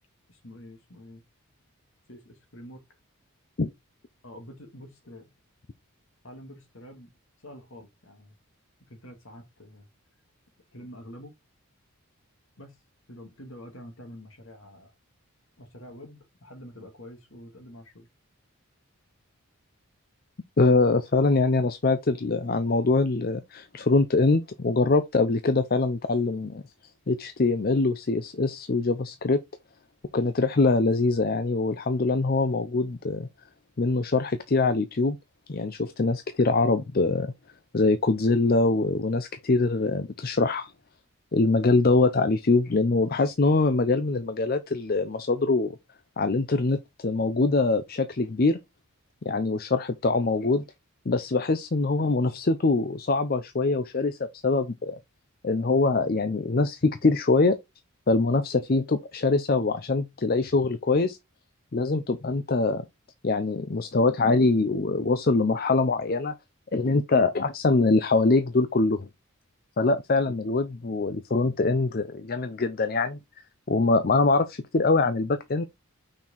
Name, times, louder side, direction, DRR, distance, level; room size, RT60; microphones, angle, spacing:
voice 1, 0.3-1.2 2.1-2.8 4.2-5.3 6.2-7.1 7.4-8.4 8.9-9.9 10.7-11.3 12.6-12.8 13.1-14.9 15.6-18.1 41.5-41.7 49.3-49.5, equal, 60° left, 2.1 m, -46 dB
voice 2, 20.6-26.6 27.1-29.4 30.1-33.3 33.8-35.2 35.5-37.3 37.7-40.7 41.3-45.8 46.2-48.6 49.2-50.6 51.1-55.0 55.4-57.6 58.1-61.2 61.7-62.8 63.2-66.3 66.7-69.1 69.8-73.2 73.7-75.6, left 3 dB, 40° left, 0.5 m, -23 dB
6.0 x 4.5 x 4.0 m
head